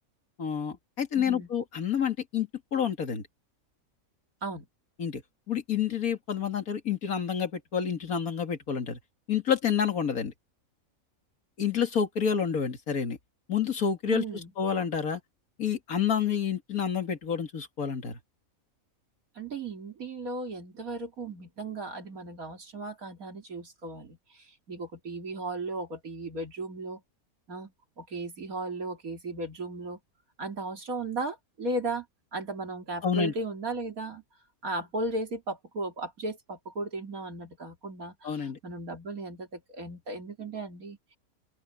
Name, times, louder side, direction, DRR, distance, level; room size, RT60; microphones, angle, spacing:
voice 1, 0.4-3.2 5.0-5.2 5.5-9.0 9.3-10.3 11.6-13.2 13.5-14.2 14.6-15.2 15.6-18.2 33.0-33.3 38.2-38.6, left 7 dB, 80° left, 2.4 m, -29 dB
voice 2, 1.1-1.5 4.4-4.7 14.1-14.5 19.3-27.0 27.5-30.0 30.4-32.1 32.3-34.2 34.6-41.0, right 2 dB, 75° right, 3.2 m, -36 dB
open air
omnidirectional pair, 1.5 m